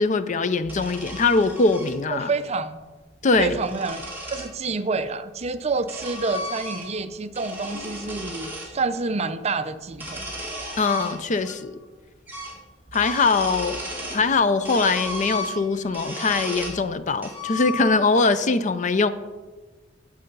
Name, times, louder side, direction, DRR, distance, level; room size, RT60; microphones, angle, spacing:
voice 1, 0.0-2.3 3.2-3.6 10.8-11.8 12.9-13.8 14.1-19.1, left 4 dB, 40° left, 12 dB, 0.5 m, -22 dB
sound 1, 0.6-2.0 3.2-4.5 5.4-7.0 7.3-8.7 9.9-11.6 11.8-11.9 12.3-12.6 12.9-14.3 14.6-16.8 17.2-18.2, left 1 dB, 10° right, 2.1 m, -34 dB
voice 2, 2.1-2.8 3.4-4.0 4.3-10.2, right 3 dB, 35° right, 11 dB, 0.5 m, -28 dB
10.0 x 7.7 x 5.4 m, 1.3 s
head